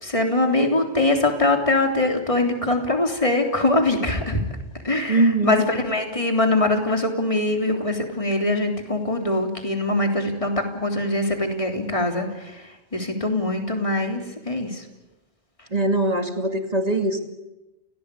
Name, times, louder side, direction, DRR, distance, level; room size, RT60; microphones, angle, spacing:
voice 1, 0.0-4.4 4.8-12.3 12.9-14.8, left 2 dB, 30° left, 3 dB, 3.6 m, -22 dB
voice 2, 5.1-5.6 15.7-17.2, right 2 dB, 35° right, 5 dB, 2.5 m, -21 dB
29.5 x 18.0 x 8.5 m, 1.0 s
omnidirectional pair, 1.1 m